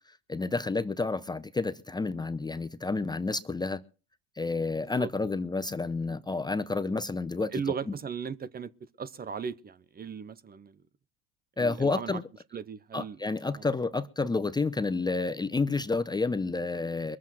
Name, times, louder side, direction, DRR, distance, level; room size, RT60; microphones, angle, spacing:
voice 1, 0.3-3.8 4.4-7.5 11.6-12.2 12.9-17.2, left 3 dB, 15° left, 0.7 m, -30 dB
voice 2, 4.8-5.1 7.5-8.7 9.0-10.8 11.6-12.2 12.5-13.2 13.5-13.7, right 6 dB, 30° right, 0.9 m, -37 dB
22.0 x 7.4 x 6.0 m
supercardioid pair, 90°, 31 cm